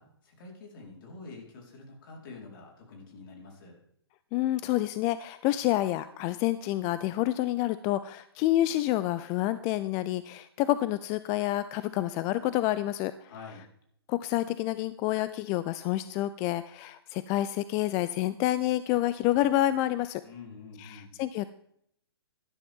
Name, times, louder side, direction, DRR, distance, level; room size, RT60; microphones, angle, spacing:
voice 1, 0.0-3.8 13.2-13.7 20.2-21.2, left 4 dB, 55° left, 0 dB, 4.3 m, -47 dB
voice 2, 4.3-13.1 14.1-20.2 20.8-21.5, left 15 dB, 25° left, 14 dB, 0.3 m, -28 dB
12.0 x 11.0 x 3.6 m, 0.72 s
hypercardioid pair, 145°, 14 cm